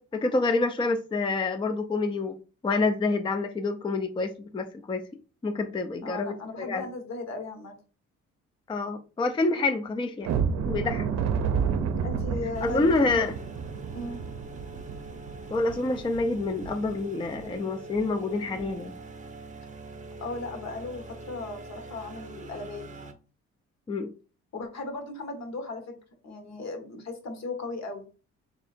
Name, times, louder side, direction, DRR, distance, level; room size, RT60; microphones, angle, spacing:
voice 1, 0.0-2.3 2.6-5.0 5.4-6.9 8.7-10.3 10.7-11.1 12.6-13.3 15.5-18.9 23.9-24.1, left 3 dB, 15° left, 0.4 m, -27 dB
voice 2, 6.0-7.7 12.0-13.2 13.9-14.2 20.2-23.2 24.5-26.0 26.2-28.1, left 2 dB, 60° left, 1.3 m, -36 dB
sound 1, 10.2-17.0 17.3-17.5 17.9-18.1 18.5-18.7, right 6 dB, 60° right, 0.6 m, -31 dB
sound 2, 12.5-23.1, right 2 dB, 25° right, 0.7 m, -44 dB
3.3 x 2.8 x 4.2 m
cardioid pair, 90°, 30 cm